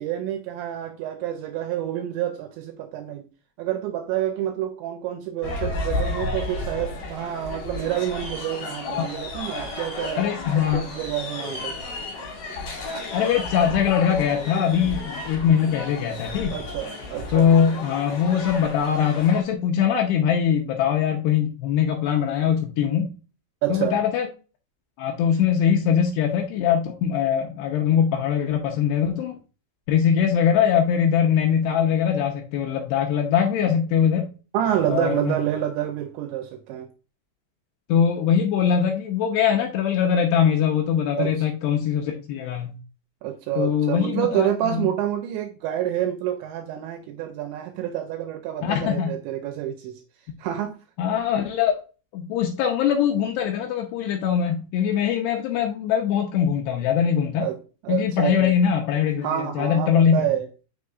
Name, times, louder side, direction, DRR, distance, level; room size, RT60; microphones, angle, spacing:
voice 1, 0.0-3.3 3.6-10.2 10.5-11.8 16.5-17.5 23.6-24.0 34.5-36.9 41.2-41.5 43.2-50.0 50.4-50.8 57.4-58.5 59.2-60.5, right 11 dB, 85° right, 2.6 m, -28 dB
sound 1, 5.4-19.4, left 2 dB, 50° left, 2.3 m, -32 dB
voice 2, 10.2-10.8 13.1-16.6 17.3-23.1 23.7-24.3 25.0-29.4 29.9-34.3 34.9-35.4 37.9-42.8 43.6-44.9 48.6-49.2 51.0-51.7 52.1-57.5 57.9-60.3, left 8 dB, 90° left, 2.4 m, -22 dB
6.7 x 6.3 x 2.4 m
omnidirectional pair, 5.7 m